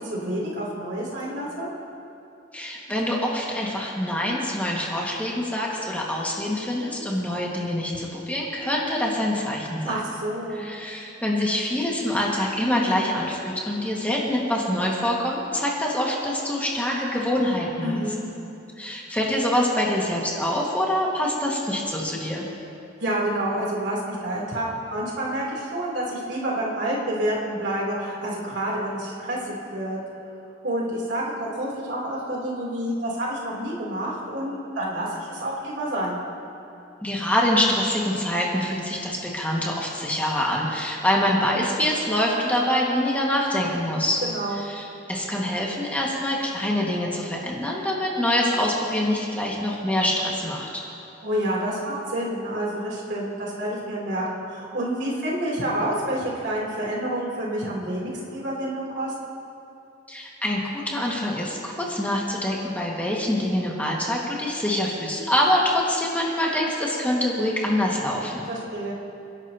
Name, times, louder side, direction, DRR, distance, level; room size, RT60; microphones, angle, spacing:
voice 1, 0.0-1.7 9.9-10.7 17.8-18.3 23.0-30.0 30.6-36.2 44.2-44.6 51.2-59.1 68.5-68.9, right 1 dB, 65° right, -4 dB, 3.3 m, -28 dB
voice 2, 2.5-9.9 10.5-18.0 18.8-22.4 37.0-44.2 44.6-44.8 45.1-50.7 60.1-68.4, left 1 dB, 10° left, -3 dB, 1.8 m, -25 dB
29.0 x 11.0 x 2.9 m, 2.6 s
head